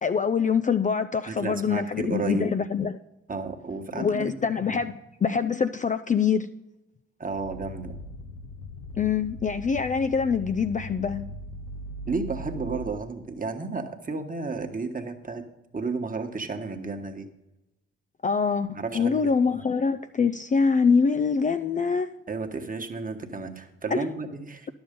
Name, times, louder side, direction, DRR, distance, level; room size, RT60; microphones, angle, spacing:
voice 1, 0.0-3.0 3.9-6.5 9.0-11.3 18.2-22.1 23.9-24.1, left 5 dB, 25° left, 10 dB, 0.4 m, -24 dB
voice 2, 1.3-2.5 3.3-4.9 7.2-8.0 12.1-15.4 15.7-17.3 18.7-19.6 22.3-24.7, right 3 dB, 30° right, 5 dB, 1.3 m, -32 dB
sound 1, 7.2-13.0, equal, 80° left, 0.8 m, -39 dB
10.5 x 7.0 x 5.2 m, 0.97 s
hypercardioid pair, 45°, 30 cm